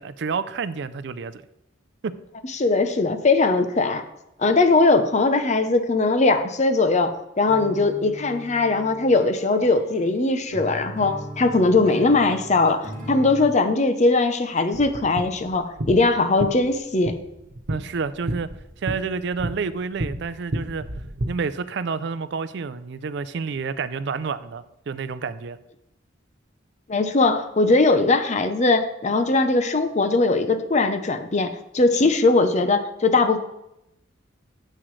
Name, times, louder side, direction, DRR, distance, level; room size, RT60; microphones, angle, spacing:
voice 1, 0.0-1.4 2.0-2.1 17.7-18.5 18.8-20.8 21.3-25.6, right 5 dB, 60° right, 14 dB, 0.4 m, -29 dB
voice 2, 2.5-4.0 4.4-17.2 26.9-33.4, left 3 dB, 35° left, 8 dB, 0.7 m, -20 dB
sound 1, 7.5-13.6, right 1 dB, 45° right, 1.5 m, -38 dB
sound 2, 14.7-21.3, right 1 dB, 80° right, 1.1 m, -32 dB
9.8 x 7.7 x 3.2 m, 0.85 s
head